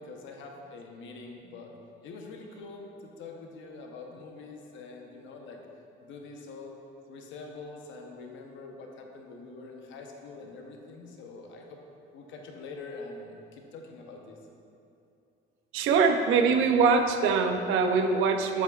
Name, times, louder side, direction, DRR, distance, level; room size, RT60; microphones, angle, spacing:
voice 1, 0.0-1.7 2.0-5.6 6.0-6.8 7.1-11.8 12.1-14.4, left 3 dB, 70° left, 1 dB, 0.9 m, -44 dB
voice 2, 15.7-18.6, right 5 dB, 75° right, 6 dB, 0.6 m, -23 dB
7.4 x 7.1 x 2.4 m, 2.7 s
cardioid pair, 155°, 21 cm